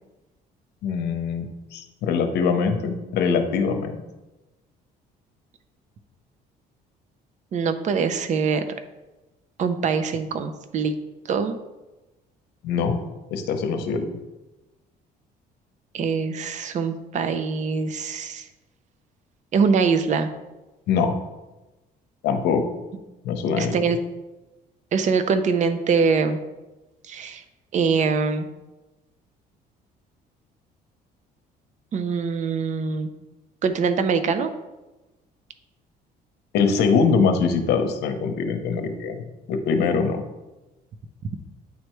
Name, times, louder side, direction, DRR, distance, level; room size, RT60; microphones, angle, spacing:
voice 1, 0.8-4.0 12.6-13.0 13.3-14.1 20.9-21.1 22.2-22.7 23.2-23.9 36.5-39.2 39.5-40.2, left 5 dB, 80° left, 6 dB, 0.8 m, -23 dB
voice 2, 7.5-8.6 9.6-10.9 11.3-11.6 15.9-18.4 19.5-20.3 23.6-24.0 24.9-26.4 27.1-27.4 27.7-28.5 31.9-33.1 33.6-34.5, right 5 dB, 45° right, 10 dB, 0.6 m, -23 dB
9.3 x 3.3 x 3.1 m, 1.1 s
cardioid pair, 110°, 17 cm